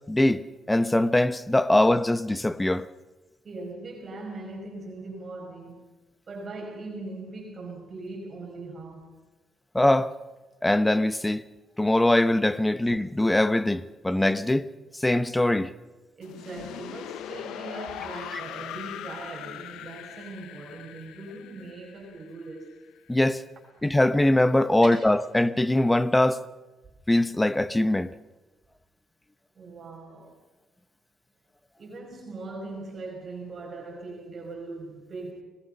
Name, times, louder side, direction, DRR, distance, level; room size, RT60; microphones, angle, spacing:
voice 1, 0.1-2.9 9.7-10.1 10.6-11.4 11.8-14.7 15.0-15.7 18.3-18.4 23.1-23.4 23.8-26.4 27.1-28.1, left 1 dB, 10° left, 1.0 m, -22 dB
voice 2, 3.4-5.9 6.3-9.2 10.5-10.6 16.2-22.7 23.8-23.9 24.8-25.1 29.6-30.4 31.8-35.4, right 3 dB, 45° right, 5.3 m, -40 dB
sound 1, 16.2-23.1, left 11 dB, 85° left, 1.0 m, -40 dB
25.5 x 19.5 x 5.5 m
cardioid pair, 90°, 0 cm